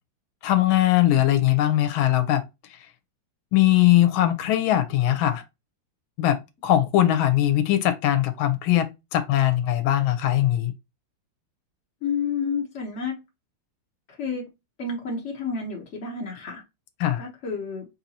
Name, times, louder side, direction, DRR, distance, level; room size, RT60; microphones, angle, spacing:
voice 1, 0.4-2.4 3.5-5.4 6.2-6.4 6.6-10.7 17.0-17.3, left 13 dB, 80° left, 1.4 m, -20 dB
voice 2, 12.0-13.2 14.1-14.4 14.8-16.6 17.2-17.9, left 5 dB, 60° left, 0.7 m, -30 dB
4.6 x 2.7 x 2.7 m
omnidirectional pair, 2.3 m